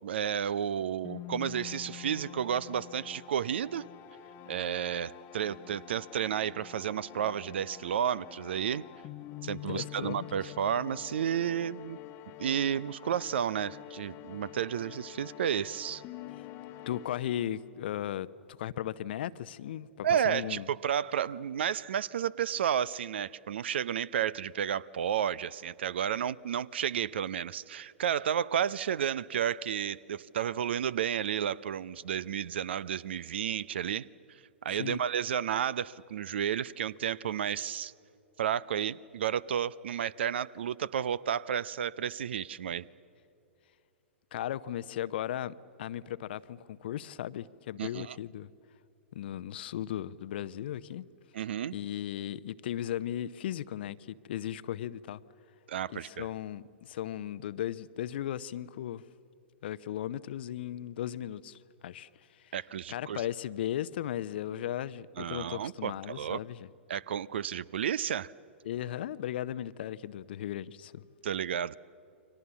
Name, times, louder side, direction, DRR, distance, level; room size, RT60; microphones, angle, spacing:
voice 1, 0.0-3.8 4.5-8.8 9.4-12.0 12.4-16.0 20.0-37.9 38.4-42.9 47.8-48.2 51.3-51.7 55.7-56.3 62.5-63.2 65.2-66.4 66.9-68.3 71.2-71.8, right 9 dB, 60° right, 0.6 m, -32 dB
sound 1, 1.0-17.8, left 14 dB, 35° left, 1.0 m, -47 dB
voice 2, 9.7-10.3 16.9-18.3 18.6-20.7 34.7-35.0 44.3-48.5 49.1-51.1 51.7-55.2 55.9-59.0 59.6-62.5 62.9-66.7 68.6-71.0, left 11 dB, 55° left, 0.7 m, -36 dB
29.5 x 23.5 x 7.2 m
figure-of-eight pair, 105°, 7 cm